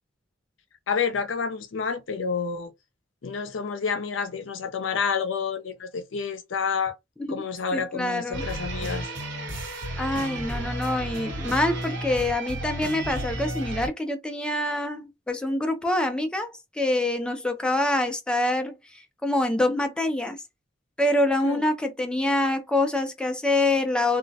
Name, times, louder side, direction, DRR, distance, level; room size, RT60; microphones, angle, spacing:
voice 1, 0.9-2.7 3.2-6.9 7.3-9.1 21.4-21.6, left 5 dB, 80° left, 0.5 m, -29 dB
voice 2, 7.7-8.5 10.0-20.4 21.0-24.2, left 1 dB, 5° left, 0.4 m, -26 dB
sound 1, 8.3-13.9, right 1 dB, 65° right, 1.1 m, -32 dB
2.3 x 2.1 x 2.6 m
head